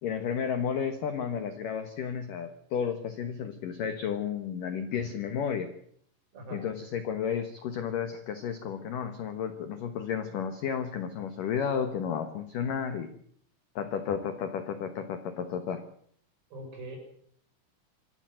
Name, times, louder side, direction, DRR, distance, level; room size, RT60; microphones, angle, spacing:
voice 1, 0.0-5.7 6.5-13.1 13.8-15.8, left 7 dB, 70° left, 9 dB, 2.1 m, -32 dB
voice 2, 16.5-17.0, right 2 dB, 50° right, 2 dB, 7.7 m, -41 dB
26.0 x 14.0 x 7.8 m, 0.65 s
omnidirectional pair, 5.6 m